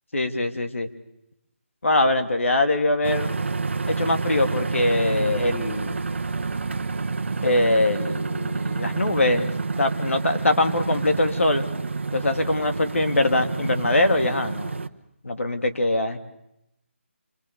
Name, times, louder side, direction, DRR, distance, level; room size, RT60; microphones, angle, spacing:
voice 1, 0.1-0.9 1.8-3.4 3.9-6.0 7.4-9.5 9.8-11.7 12.1-14.8 15.2-16.2, left 2 dB, 80° left, 5 dB, 2.7 m, -23 dB
sound 1, 3.0-14.9, right 4 dB, 60° right, 1.1 m, -28 dB
26.5 x 24.5 x 6.9 m, 0.84 s
figure-of-eight pair, 170°, 7 cm